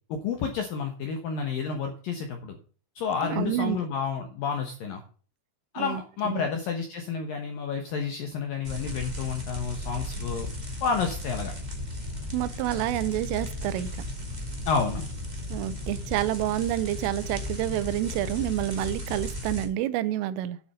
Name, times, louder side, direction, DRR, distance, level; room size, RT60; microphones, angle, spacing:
voice 1, 0.1-2.6 3.0-5.0 5.7-10.5 10.8-11.5 14.7-15.1, left 6 dB, 75° left, 4 dB, 2.1 m, -30 dB
voice 2, 3.2-3.8 5.8-6.5 12.3-13.9 15.5-20.6, right 13 dB, 85° right, 15 dB, 3.3 m, -28 dB
sound 1, 8.6-19.6, left 1 dB, 25° right, 0.9 m, -35 dB
9.5 x 8.0 x 5.5 m, 0.41 s
omnidirectional pair, 5.8 m